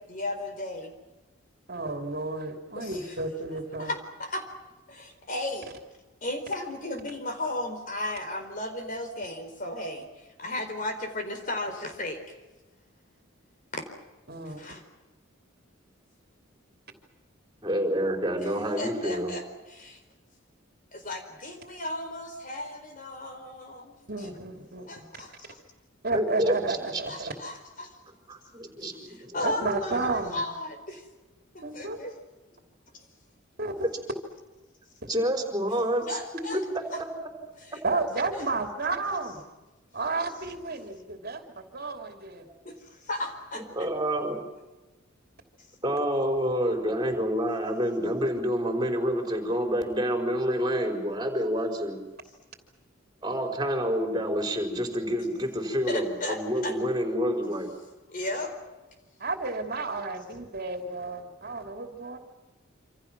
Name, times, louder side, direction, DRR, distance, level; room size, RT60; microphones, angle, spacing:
voice 1, 0.1-0.9 2.8-3.0 3.8-4.5 4.9-5.7 6.2-12.2 13.7-13.8 14.6-14.8 18.4-18.5 18.8-19.4 19.7-20.0 20.9-24.3 24.9-25.6 27.1-27.9 29.1-31.0 31.5-32.1 32.9-33.0 36.1-36.6 36.9-37.0 37.7-37.8 38.3-38.4 42.6-43.6 55.9-56.7 58.1-58.5, left 2 dB, 40° left, 6 dB, 4.4 m, -35 dB
voice 2, 1.7-3.9 14.3-14.6 24.1-25.0 26.0-27.3 29.4-30.4 31.6-32.0 33.6-33.9 37.8-39.4 39.9-42.5 59.2-62.2, right 3 dB, 50° right, 5 dB, 3.0 m, -32 dB
voice 3, 17.6-19.3 26.1-27.0 28.3-29.7 33.8-33.9 35.1-36.1 36.5-36.8 43.5-44.4 45.8-52.0 53.2-57.7, equal, 20° right, 5 dB, 4.8 m, -28 dB
27.5 x 26.5 x 6.1 m, 1.1 s
head